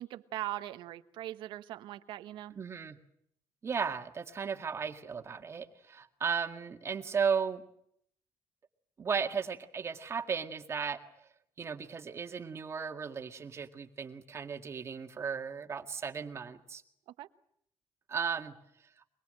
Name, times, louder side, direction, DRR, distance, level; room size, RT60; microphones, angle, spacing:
voice 1, 0.0-2.6 17.1-17.3, right 14 dB, 90° right, 11 dB, 1.2 m, -41 dB
voice 2, 2.6-3.0 3.6-7.6 9.0-11.0 11.6-16.8 18.1-18.5, right 6 dB, 35° right, 6 dB, 1.9 m, -35 dB
24.0 x 22.0 x 7.7 m, 0.71 s
cardioid pair, 130°, 8 cm